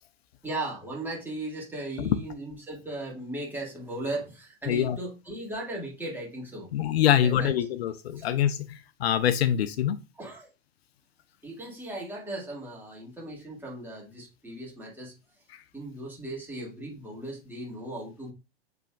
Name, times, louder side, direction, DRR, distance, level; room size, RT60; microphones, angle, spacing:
voice 1, 0.4-6.7 7.1-7.5 8.1-8.3 10.2-10.5 11.4-15.1 15.7-18.3, right 1 dB, 5° right, 1.8 m, -37 dB
voice 2, 4.7-5.0 6.7-10.0, left 10 dB, 80° left, 0.5 m, -25 dB
6.9 x 3.3 x 2.3 m
hypercardioid pair, 100°, 31 cm